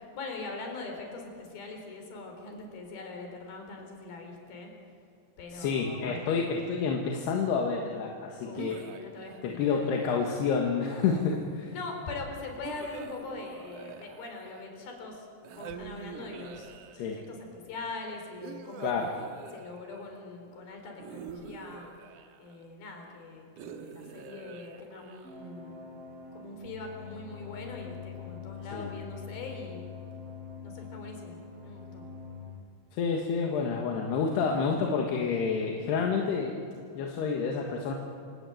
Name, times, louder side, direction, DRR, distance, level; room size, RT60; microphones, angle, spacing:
voice 1, 0.1-4.7 5.4-6.4 8.4-9.9 11.7-16.7 17.1-19.1 19.5-21.9 22.4-25.8 26.3-29.8 30.6-32.1, left 3 dB, 60° left, 3 dB, 5.7 m, -42 dB
voice 2, 5.5-8.8 9.4-11.7 16.9-17.2 18.8-19.1 28.7-28.9 32.9-36.6 37.0-37.9, left 5 dB, 75° left, 2 dB, 3.6 m, -29 dB
sound 1, 8.5-10.1 10.8-11.7 12.6-14.8 15.4-17.3 18.4-20.2 21.0-22.7 23.6-25.5, right 8 dB, 65° right, 2.1 m, -46 dB
sound 2, 25.2-32.5, left 6 dB, 30° right, 8.7 m, -44 dB
28.0 x 17.0 x 9.1 m, 2.4 s
omnidirectional pair, 4.9 m